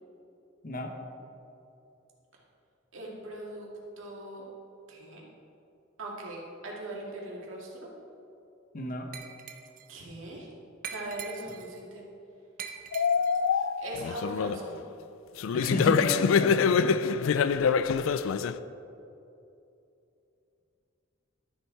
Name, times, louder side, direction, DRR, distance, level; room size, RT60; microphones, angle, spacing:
voice 1, 2.9-3.7 4.0-4.4 4.9-5.2 6.0-7.9 9.9-10.5 10.9-12.0 13.8-14.8, right 1 dB, 90° right, -3 dB, 2.3 m, -40 dB
voice 2, 8.7-9.1 14.8-14.9 15.5-16.9, left 1 dB, 45° left, 3 dB, 1.1 m, -32 dB
Glass, 9.1-9.9 10.8-11.8 12.6-13.5, right 7 dB, 45° right, 0.7 m, -42 dB
sound 1, 12.9-14.7 15.4-18.6, left 6 dB, 90° left, 0.4 m, -25 dB
12.5 x 7.0 x 4.7 m, 2.8 s
head